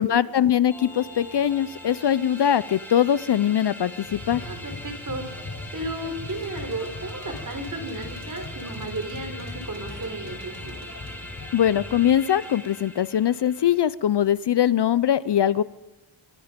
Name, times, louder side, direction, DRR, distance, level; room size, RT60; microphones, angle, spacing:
voice 1, 0.0-4.4 11.5-15.6, left 10 dB, 55° left, 17 dB, 0.6 m, -22 dB
sound 1, 0.7-13.8, left 1 dB, 5° left, 4.0 m, -42 dB
sound 2, 4.1-12.1, left 2 dB, 40° left, 4.9 m, -39 dB
voice 2, 4.4-5.4 5.7-10.7, right 2 dB, 35° right, 5 dB, 4.0 m, -34 dB
sound 3, 6.1-12.9 13.2-14.1, right 4 dB, 60° right, 3.4 m, -52 dB
25.5 x 21.0 x 5.2 m, 1.2 s
wide cardioid pair, 110°, 50 cm